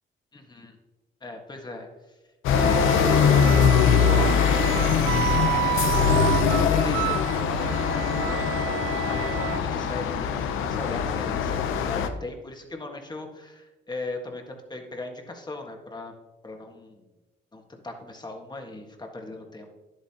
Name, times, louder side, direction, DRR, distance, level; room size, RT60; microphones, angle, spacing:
voice 1, 0.3-0.8 1.2-2.2 2.5-10.3 10.6-16.1 16.4-17.0 17.5-19.7, left 2 dB, 20° left, 3 dB, 1.6 m, -39 dB
sound 1, 2.4-12.1, left 7 dB, 85° left, 0.7 m, -22 dB
Wind instrument woodwind instrument, 2.5-9.6, right 14 dB, 75° right, 0.4 m, -30 dB
10.0 x 8.2 x 2.9 m, 1.1 s
cardioid pair, 90°, 20 cm